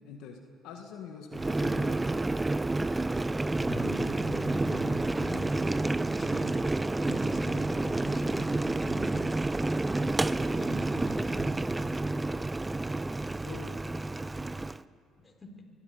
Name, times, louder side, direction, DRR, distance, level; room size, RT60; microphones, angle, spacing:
voice 1, 0.0-2.0 13.4-13.8, left 6 dB, 75° left, 3 dB, 1.7 m, -45 dB
Boiling, 1.3-14.8, right 2 dB, 15° right, 0.5 m, -29 dB
voice 2, 3.6-6.5 7.0-9.3 9.9-10.1 10.4-11.5 15.2-15.6, left 2 dB, 25° left, 3 dB, 4.0 m, -41 dB
23.0 x 12.5 x 9.4 m, 2.3 s
supercardioid pair, 75°, 0 cm